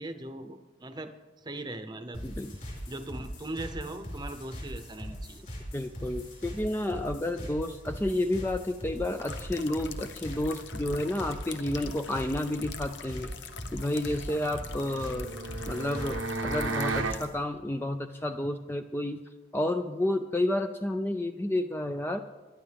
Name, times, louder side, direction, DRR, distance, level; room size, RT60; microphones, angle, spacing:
voice 1, 0.0-2.2 2.9-5.4, right 2 dB, 20° right, 9 dB, 0.8 m, -39 dB
sound 1, 2.1-17.4, equal, 45° left, 5.0 m, -41 dB
voice 2, 2.2-2.6 5.7-13.3 13.7-15.3 15.7-19.2 19.5-22.2, left 1 dB, 10° left, 7 dB, 0.4 m, -31 dB
sound 2, 9.2-17.3, left 6 dB, 60° left, 0.9 m, -45 dB
sound 3, 14.6-17.2, right 3 dB, 90° right, 1.0 m, -33 dB
25.0 x 11.5 x 3.5 m, 1.3 s
head